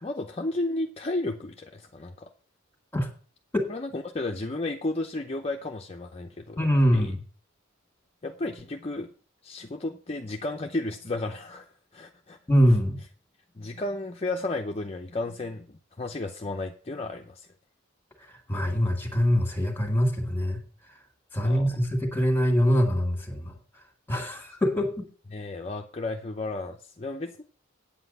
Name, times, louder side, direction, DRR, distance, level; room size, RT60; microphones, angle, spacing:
voice 1, 0.0-2.3 3.7-7.1 8.2-9.1 9.4-12.4 13.6-17.5 21.4-21.7 25.3-27.4, left 2 dB, 30° left, 3 dB, 0.6 m, -33 dB
voice 2, 6.6-7.2 12.5-13.0 18.5-20.6 21.3-23.5 24.1-25.0, equal, 10° left, 4 dB, 1.8 m, -23 dB
8.7 x 8.0 x 5.4 m, 0.41 s
head